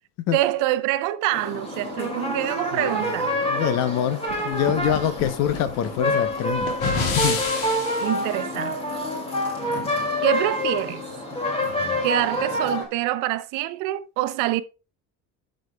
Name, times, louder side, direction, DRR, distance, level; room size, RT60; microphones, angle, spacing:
voice 1, 0.3-3.4 8.0-8.8 10.2-11.1 12.0-14.6, right 15 dB, 85° right, 0.7 m, -25 dB
sound 1, 1.3-12.8, left 1 dB, 20° left, 2.5 m, -27 dB
voice 2, 3.4-6.7 7.1-7.4 11.6-12.0, left 10 dB, 55° left, 0.9 m, -25 dB
sound 2, 4.3-8.2, left 5 dB, 85° left, 2.2 m, -30 dB
13.0 x 6.4 x 2.3 m
cardioid pair, 175°, 31 cm